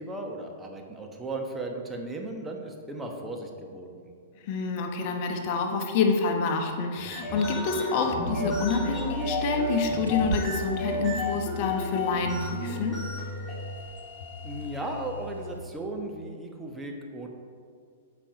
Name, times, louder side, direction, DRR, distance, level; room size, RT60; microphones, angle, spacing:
voice 1, 0.0-4.1 14.4-17.3, right 2 dB, 10° right, 2 dB, 1.1 m, -36 dB
voice 2, 4.4-13.0, left 4 dB, 45° left, 3 dB, 1.1 m, -27 dB
sound 1, 7.0-15.2, left 1 dB, 15° left, 1.7 m, -33 dB
sound 2, 8.2-15.7, left 1 dB, 60° left, 1.9 m, -39 dB
Bird, 8.5-15.6, right 4 dB, 75° right, 0.6 m, -43 dB
7.4 x 5.3 x 5.0 m, 2.2 s
figure-of-eight pair, 105°, 0 cm